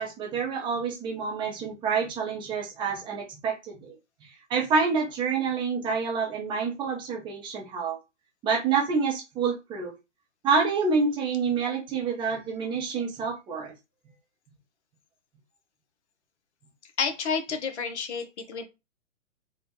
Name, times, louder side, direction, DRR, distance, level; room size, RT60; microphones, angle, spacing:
voice 1, 0.0-4.0 4.2-8.0 8.4-9.9 10.4-13.7, right 5 dB, 15° right, -2 dB, 0.5 m, -28 dB
voice 2, 17.0-18.6, left 5 dB, 65° left, 6 dB, 0.9 m, -30 dB
3.3 x 2.1 x 2.9 m, 0.26 s
figure-of-eight pair, 115°, 37 cm